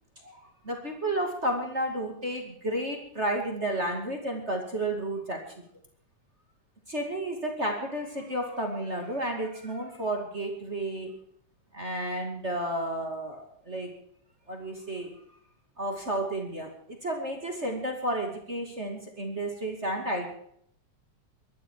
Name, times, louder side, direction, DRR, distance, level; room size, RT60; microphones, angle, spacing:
voice 1, 0.6-5.4 6.9-11.1 11.7-13.9 14.5-15.1 15.8-16.7 17.0-20.3, right 1 dB, 25° right, 2 dB, 2.3 m, -32 dB
22.0 x 12.5 x 4.7 m, 0.68 s
omnidirectional pair, 3.5 m